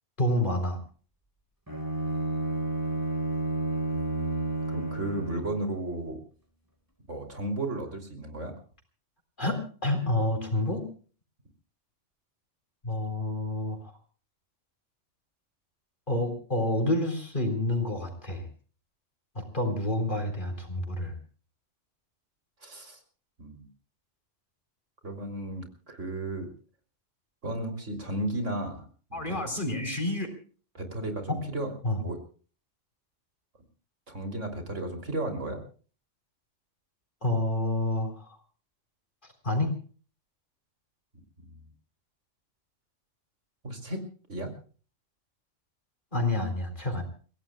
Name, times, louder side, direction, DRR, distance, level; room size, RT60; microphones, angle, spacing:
voice 1, 0.2-0.8 9.4-10.9 12.8-13.9 16.1-18.5 19.3-21.2 29.1-30.3 31.3-31.4 31.8-32.0 37.2-38.4 39.4-39.8 46.1-47.0, left 1 dB, 40° left, 4 dB, 4.0 m, -28 dB
Bowed string instrument, 1.7-5.7, right 2 dB, 15° right, 4.3 m, -31 dB
voice 2, 3.9-6.2 7.1-8.5 22.6-23.0 23.4-23.7 25.0-26.5 27.4-29.4 30.8-31.7 32.0-32.2 34.1-35.6 41.5-41.6 43.6-44.0 44.3-44.5, right 1 dB, 80° right, 4 dB, 3.6 m, -34 dB
29.5 x 17.0 x 2.3 m, 0.40 s
omnidirectional pair, 1.3 m